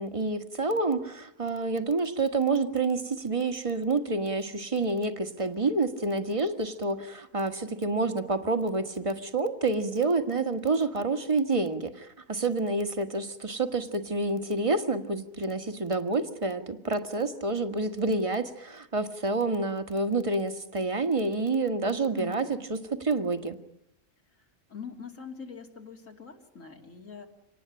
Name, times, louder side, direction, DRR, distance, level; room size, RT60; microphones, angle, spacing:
voice 1, 0.0-23.6, right 3 dB, 25° right, 7 dB, 1.6 m, -28 dB
voice 2, 22.1-22.7 24.3-27.3, left 6 dB, 85° left, 3 dB, 3.3 m, -44 dB
26.5 x 19.0 x 8.9 m, 0.80 s
omnidirectional pair, 1.3 m